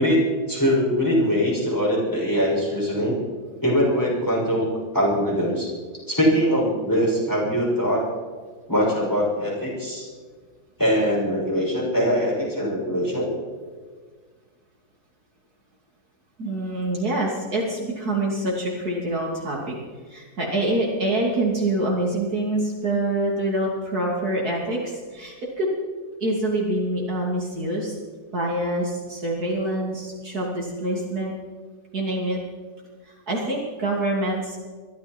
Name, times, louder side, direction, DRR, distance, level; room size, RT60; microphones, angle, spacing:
voice 1, 0.0-3.2 3.6-4.7 4.9-5.7 6.1-8.1 8.7-10.1 10.8-13.3, equal, 10° left, -5 dB, 6.3 m, -22 dB
voice 2, 16.4-19.7 20.1-25.7 26.2-27.9 28.3-31.3 31.9-32.4 33.0-34.6, right 1 dB, 55° right, -2 dB, 3.3 m, -26 dB
23.0 x 14.0 x 4.5 m, 1.5 s
omnidirectional pair, 2.0 m